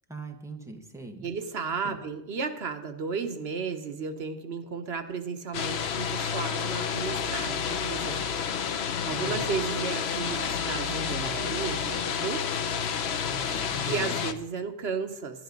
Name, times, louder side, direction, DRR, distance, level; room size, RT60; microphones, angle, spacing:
voice 1, 0.1-1.3 1.8-2.0 9.0-9.4 13.2-14.2, right 2 dB, 5° right, 4 dB, 1.1 m, -41 dB
voice 2, 1.2-8.4 8.7-12.4 13.9-15.4, right 5 dB, 80° right, 7 dB, 1.2 m, -34 dB
sound 1, 5.5-14.3, left 7 dB, 85° left, 1.0 m, -30 dB
11.5 x 11.0 x 5.3 m, 0.80 s
omnidirectional pair, 1.0 m